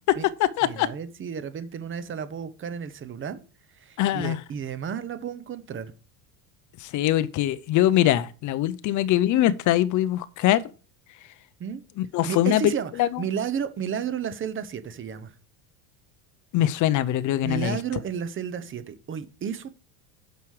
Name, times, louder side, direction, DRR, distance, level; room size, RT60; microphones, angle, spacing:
voice 1, 0.1-0.9 4.0-4.4 6.8-10.6 12.0-12.7 13.0-13.2 16.5-17.8, left 13 dB, 40° left, 0.6 m, -22 dB
voice 2, 0.6-3.4 3.7-5.9 11.6-11.8 12.2-12.9 13.2-15.3 17.4-19.7, right 7 dB, 25° right, 0.9 m, -32 dB
9.4 x 6.0 x 4.8 m
cardioid pair, 140°, 48 cm